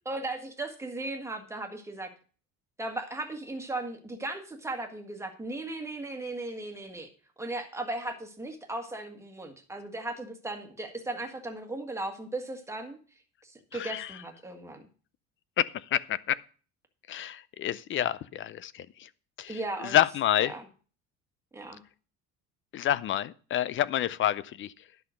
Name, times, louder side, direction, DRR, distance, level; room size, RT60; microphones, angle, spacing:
voice 1, 0.0-2.1 2.8-7.1 7.4-13.0 13.4-14.8 19.5-20.0 20.4-20.6 21.5-21.8, right 2 dB, 10° right, 4 dB, 1.7 m, -37 dB
voice 2, 13.7-14.1 15.6-16.4 17.1-19.1 19.4-20.5 22.7-24.7, left 11 dB, 40° left, 19 dB, 0.5 m, -28 dB
11.0 x 5.9 x 6.4 m, 0.38 s
cardioid pair, 140°, 32 cm